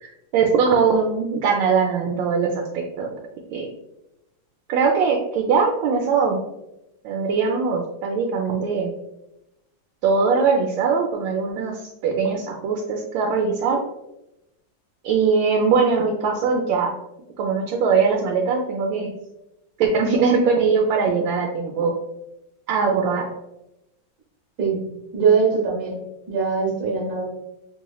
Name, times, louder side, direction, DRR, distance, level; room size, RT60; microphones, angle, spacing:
voice 1, 0.0-3.1 3.5-3.7 4.7-6.4 7.0-8.9 10.0-13.8 15.0-16.9 17.4-19.1 19.8-21.9 22.7-23.3, right 5 dB, 80° right, 1 dB, 1.3 m, -21 dB
voice 2, 25.1-26.0 26.3-27.2, right 5 dB, 55° right, -2 dB, 1.4 m, -21 dB
4.5 x 3.0 x 2.3 m, 0.89 s
omnidirectional pair, 2.1 m